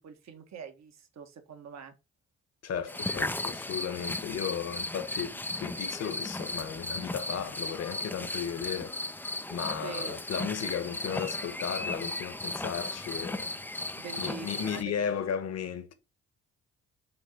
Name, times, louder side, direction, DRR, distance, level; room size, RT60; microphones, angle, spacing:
voice 1, 0.0-1.9 9.8-10.2 13.9-15.1, right 6 dB, 60° right, 1.6 m, -44 dB
voice 2, 2.6-9.0 9.5-13.5 14.2-15.9, left 8 dB, 55° left, 1.3 m, -35 dB
sound 1, 2.9-14.8, left 2 dB, 5° left, 0.5 m, -36 dB
6.8 x 3.8 x 5.1 m
hypercardioid pair, 50°, 31 cm